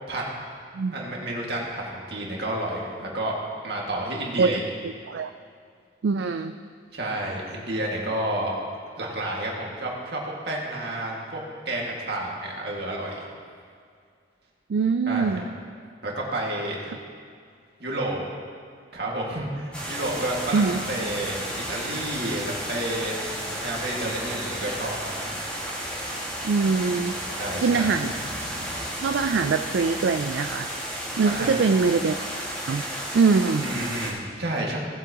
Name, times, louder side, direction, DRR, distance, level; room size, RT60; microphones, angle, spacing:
voice 1, 0.9-3.4 3.6-4.6 6.9-8.6 9.0-11.4 11.7-13.3 15.1-15.4 16.0-16.9 17.8-18.2 18.9-23.2 23.5-25.3 27.4-27.9 31.3-31.6 33.6-34.8, right 1 dB, 60° right, -3 dB, 2.1 m, -30 dB
voice 2, 6.0-6.5 14.7-15.4 20.5-20.8 26.4-27.2 27.6-28.1 29.0-30.7 31.2-32.1 32.7-32.8 33.1-33.7, right 4 dB, 75° right, 8 dB, 0.4 m, -22 dB
sound 1, 19.7-34.1, equal, 5° left, 2.0 m, -33 dB
18.0 x 8.2 x 3.0 m, 2.2 s
head